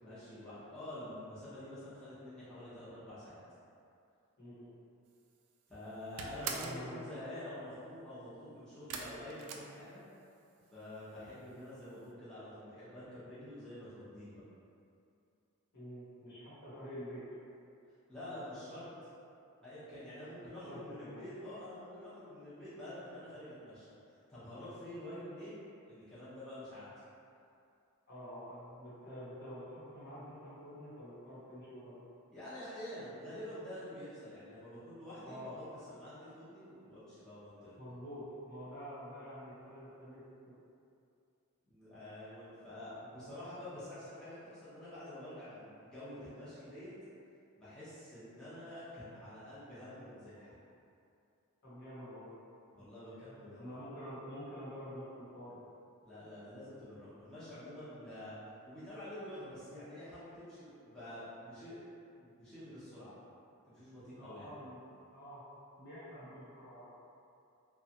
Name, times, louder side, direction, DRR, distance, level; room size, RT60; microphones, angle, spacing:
voice 1, 0.0-3.4 5.7-10.0 10.7-14.4 18.1-18.9 19.6-26.9 32.3-37.8 41.7-46.9 47.5-50.6 52.7-53.6 56.0-58.3 58.6-61.8 62.1-63.1 63.7-64.5, left 1 dB, 5° left, -14 dB, 0.7 m, -48 dB
voice 2, 4.4-4.7 6.4-7.1 15.7-17.2 20.6-21.2 28.1-32.0 35.2-35.6 37.8-40.2 51.6-52.4 52.8-55.6 64.2-65.4 65.8-66.9, equal, 50° left, -10 dB, 1.0 m, -48 dB
sound 1, 5.2-5.5 5.8-6.9 8.9-10.4 10.7-11.3 11.6-11.7 12.0-12.1, right 5 dB, 80° right, 0.3 m, -43 dB
2.9 x 2.3 x 2.7 m, 2.5 s
head